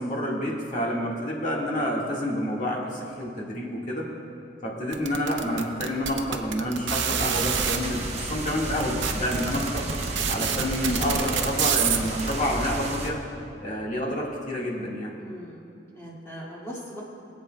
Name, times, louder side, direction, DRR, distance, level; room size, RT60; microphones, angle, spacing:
voice 1, 0.0-4.0 4.6-9.9 10.3-13.2 13.6-15.1, equal, 45° left, -3 dB, 1.7 m, -28 dB
sound 1, 4.9-7.8 8.5-8.6 8.8-12.3, right 7 dB, 90° right, 0.7 m, -27 dB
sound 2, 7.1-13.1, right 2 dB, 35° right, 1.1 m, -33 dB
voice 2, 15.2-17.0, equal, 15° left, -6 dB, 2.2 m, -40 dB
24.0 x 8.4 x 2.3 m, 2.5 s
head